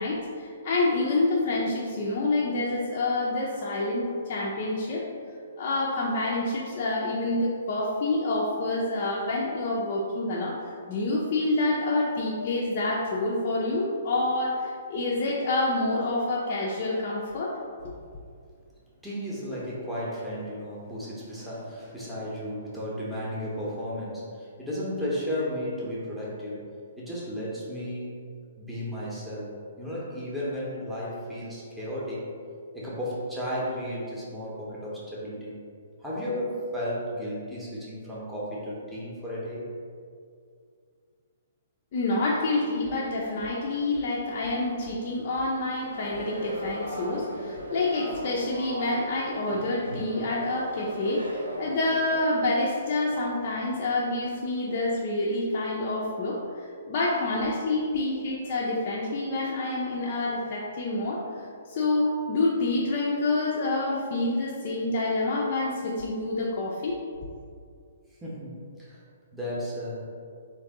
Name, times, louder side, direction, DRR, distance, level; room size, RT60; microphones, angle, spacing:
voice 1, 0.0-5.1 5.6-17.5 41.9-67.0, left 2 dB, 45° left, -5 dB, 0.5 m, -27 dB
voice 2, 19.0-26.7 27.0-28.2 28.6-29.5 29.8-32.3 32.7-35.6 36.0-39.7 45.1-45.2 68.2-69.0 69.3-70.1, equal, 5° right, -8 dB, 0.8 m, -34 dB
sound 1, 45.9-52.2, right 1 dB, 80° right, 0.5 m, -38 dB
3.5 x 2.6 x 3.6 m, 2.2 s
figure-of-eight pair, 125°, 0 cm